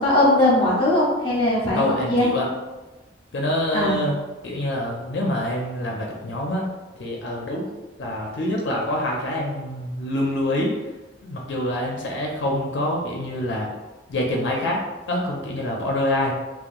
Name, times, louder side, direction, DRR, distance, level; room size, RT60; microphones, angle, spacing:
voice 1, 0.0-2.3 3.7-4.0, left 1 dB, 25° left, -5 dB, 0.7 m, -19 dB
voice 2, 1.7-2.5 3.3-6.7 7.0-7.7 8.0-10.8 11.2-13.7 14.1-16.4, left 1 dB, 65° left, -1 dB, 0.4 m, -26 dB
2.9 x 2.0 x 2.4 m, 1.1 s
head